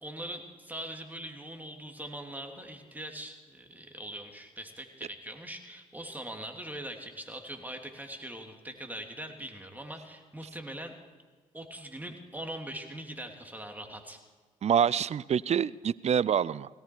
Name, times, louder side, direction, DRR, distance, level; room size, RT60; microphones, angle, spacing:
voice 1, 0.0-10.9 11.5-14.2, right 1 dB, 10° right, 3 dB, 2.9 m, -42 dB
voice 2, 14.6-16.7, right 8 dB, 40° right, 22 dB, 0.5 m, -26 dB
17.5 x 17.5 x 4.7 m, 1.4 s
hypercardioid pair, 45°, 17 cm